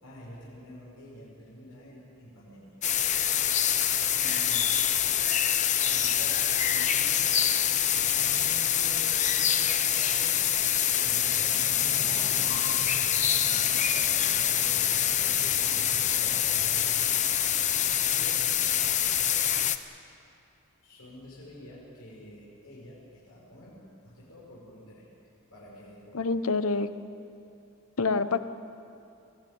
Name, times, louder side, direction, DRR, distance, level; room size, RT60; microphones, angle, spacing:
voice 1, 0.0-2.8 3.7-4.7 5.7-10.4 10.9-13.1 13.4-15.6 16.2-16.6 17.6-18.5 20.8-23.8 24.0-25.1 25.5-26.6, equal, 90° left, -7 dB, 5.4 m, -48 dB
sound 1, 2.8-19.8, left 10 dB, 30° left, 0.7 m, -25 dB
voice 2, 26.1-26.9 28.0-28.4, left 4 dB, 75° left, 12 dB, 0.9 m, -26 dB
23.5 x 16.5 x 9.6 m, 2.7 s
head